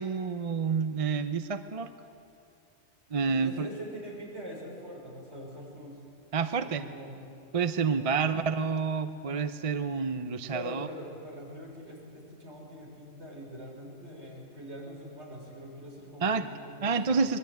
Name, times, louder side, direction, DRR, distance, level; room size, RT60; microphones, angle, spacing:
voice 1, 0.0-1.9 3.1-3.7 6.3-6.9 7.5-10.9 16.2-16.4 16.8-17.4, right 5 dB, 35° right, 10 dB, 0.6 m, -29 dB
voice 2, 3.3-6.0 6.6-7.2 7.8-8.3 10.5-17.2, equal, 60° right, -2 dB, 6.2 m, -43 dB
25.0 x 21.5 x 9.4 m, 2.5 s
omnidirectional pair, 1.3 m